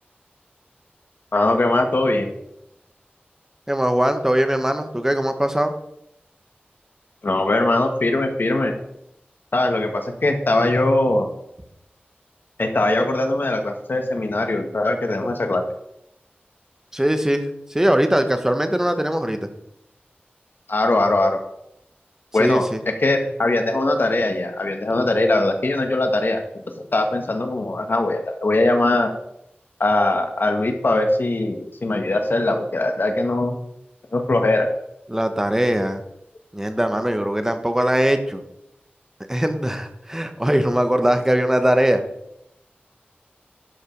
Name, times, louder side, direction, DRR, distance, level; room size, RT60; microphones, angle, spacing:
voice 1, 1.3-2.3 7.2-8.7 9.5-11.3 12.6-15.6 20.7-21.4 22.3-22.7 23.0-26.4 26.8-29.1 29.8-33.6 34.1-34.7, left 2 dB, 60° left, 5 dB, 1.6 m, -21 dB
voice 2, 3.7-5.7 16.9-19.4 22.4-22.8 35.1-36.0 36.5-38.4 39.3-42.0, right 1 dB, 15° right, 7 dB, 1.2 m, -21 dB
11.5 x 5.4 x 5.4 m, 0.80 s
wide cardioid pair, 65°, 4 cm